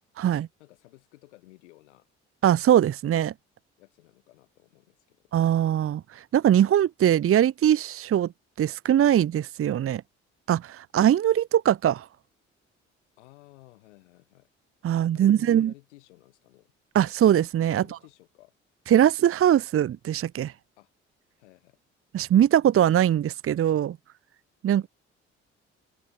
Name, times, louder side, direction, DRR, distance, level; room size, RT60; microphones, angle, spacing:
voice 1, 0.6-2.1 3.8-5.2 13.2-14.5 15.1-16.7 17.8-18.5 20.8-20.9 21.4-21.8 24.7-24.9, left 20 dB, 80° left, 7.1 m, -54 dB
voice 2, 2.4-3.3 5.3-8.3 8.6-10.0 10.5-12.1 14.8-15.7 16.9-17.8 18.9-20.5 22.1-24.0 24.6-24.9, right 10 dB, 40° right, 0.8 m, -21 dB
open air
figure-of-eight pair, 50°, 35 cm